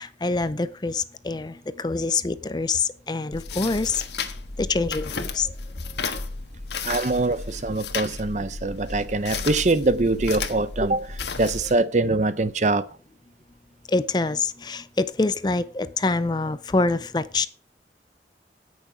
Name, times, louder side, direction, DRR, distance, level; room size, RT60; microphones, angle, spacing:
voice 1, 0.0-4.0 4.6-5.5 13.9-17.5, left 3 dB, 25° left, 0.5 m, -25 dB
sound 1, 3.3-11.7, left 4 dB, 80° left, 1.4 m, -33 dB
voice 2, 6.8-12.9, right 2 dB, 40° right, 0.6 m, -23 dB
17.0 x 6.4 x 4.9 m
head